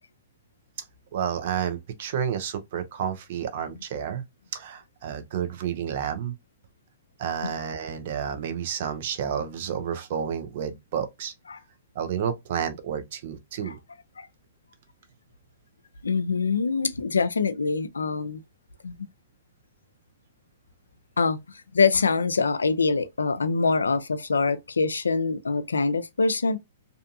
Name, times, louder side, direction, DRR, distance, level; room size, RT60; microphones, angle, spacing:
voice 1, 1.1-4.2 4.5-6.3 7.2-11.3 11.9-13.8, right 8 dB, 55° right, 0.7 m, -30 dB
voice 2, 16.0-18.4 18.8-18.9 21.2-21.4 21.7-26.6, left 4 dB, 90° left, 0.3 m, -24 dB
2.6 x 2.4 x 2.6 m
hypercardioid pair, 120°, 0 cm